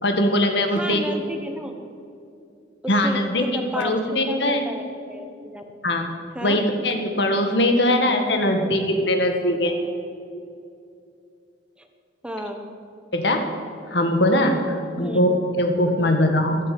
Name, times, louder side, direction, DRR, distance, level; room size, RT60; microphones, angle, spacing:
voice 1, 0.0-1.1 2.9-3.5 3.8-4.6 5.8-6.1 6.4-9.8 13.1-13.4 13.9-16.6, left 1 dB, 65° left, 4 dB, 1.8 m, -21 dB
voice 2, 0.7-1.7 2.8-5.6 6.3-6.6 12.2-12.7 15.0-15.3 16.0-16.3, equal, 5° right, 4 dB, 1.2 m, -33 dB
13.0 x 11.0 x 8.5 m, 2.6 s
head